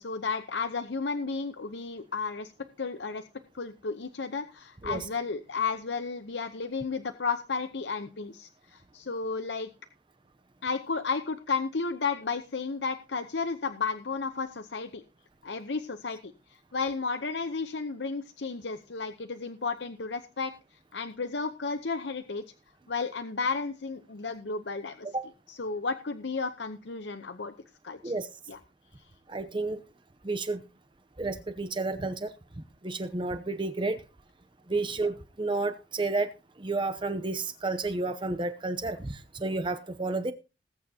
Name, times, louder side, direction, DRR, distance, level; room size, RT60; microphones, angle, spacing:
voice 1, 0.0-2.5 2.8-3.2 3.5-9.7 10.6-15.0 15.4-20.5 20.9-22.4 22.9-25.1 25.5-27.5 27.8-28.1 28.5-28.6, left 4 dB, 70° left, 0.8 m, -33 dB
voice 2, 29.3-29.8 30.2-30.6 31.2-34.0 34.7-36.3 36.6-40.3, right 3 dB, 25° right, 0.8 m, -31 dB
20.0 x 8.8 x 2.9 m
head